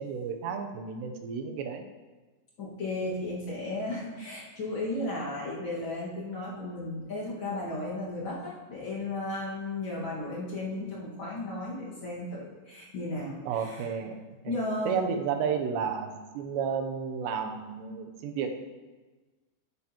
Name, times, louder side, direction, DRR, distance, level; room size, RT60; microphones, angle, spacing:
voice 1, 0.0-1.8 13.5-14.2 14.4-14.5 14.9-18.5, right 6 dB, 80° right, 4 dB, 2.9 m, -32 dB
voice 2, 2.6-13.9 14.4-15.0, left 2 dB, 55° left, -7 dB, 1.4 m, -34 dB
12.0 x 9.0 x 3.0 m, 1.3 s
omnidirectional pair, 5.1 m